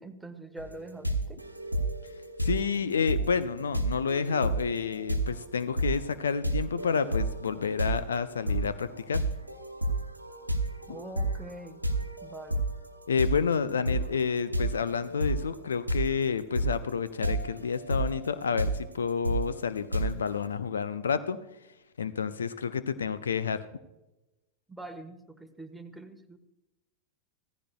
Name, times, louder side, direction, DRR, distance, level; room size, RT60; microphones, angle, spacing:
voice 1, 0.0-1.4 10.9-11.8 12.2-12.6 24.7-26.4, right 2 dB, 5° right, 7 dB, 1.2 m, -44 dB
sound 1, 0.6-20.4, right 1 dB, 90° right, 1.1 m, -32 dB
voice 2, 2.4-9.2 13.1-21.4 22.0-23.6, left 6 dB, 70° left, 14 dB, 0.5 m, -29 dB
16.5 x 15.0 x 2.3 m, 0.99 s
figure-of-eight pair, 90°, 0 cm